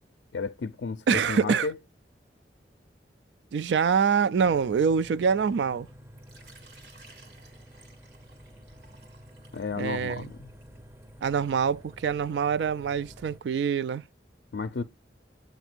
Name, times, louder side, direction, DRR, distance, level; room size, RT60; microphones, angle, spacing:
voice 1, 0.3-1.8 9.5-10.5 14.5-14.8, left 4 dB, 80° left, 0.5 m, -33 dB
voice 2, 1.1-1.7 3.5-5.9 9.8-10.3 11.2-14.0, right 6 dB, 80° right, 0.3 m, -25 dB
sound 1, 4.4-13.4, equal, 15° right, 0.5 m, -50 dB
Water / Liquid, 6.2-11.7, right 3 dB, 65° right, 1.7 m, -56 dB
7.9 x 2.7 x 5.9 m
head